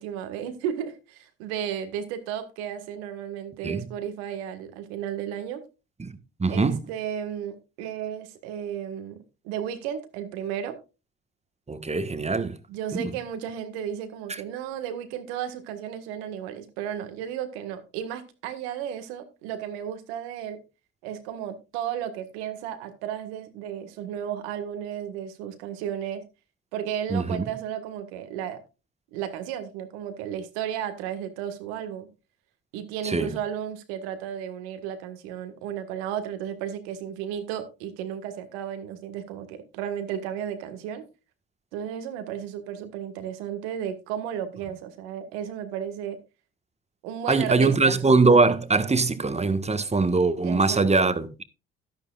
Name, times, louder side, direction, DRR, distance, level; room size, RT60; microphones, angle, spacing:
voice 1, 0.0-5.6 6.5-9.2 9.4-10.8 12.7-20.6 21.0-26.2 26.7-28.6 29.1-32.1 32.7-41.0 41.7-46.2 47.0-48.0 50.4-51.1, right 9 dB, 80° right, 1.7 m, -33 dB
voice 2, 6.4-6.8 11.7-12.6 12.9-13.1 27.1-27.4 33.0-33.3 47.3-51.4, right 3 dB, 20° right, 1.4 m, -22 dB
12.0 x 11.0 x 2.4 m
hypercardioid pair, 55°, 32 cm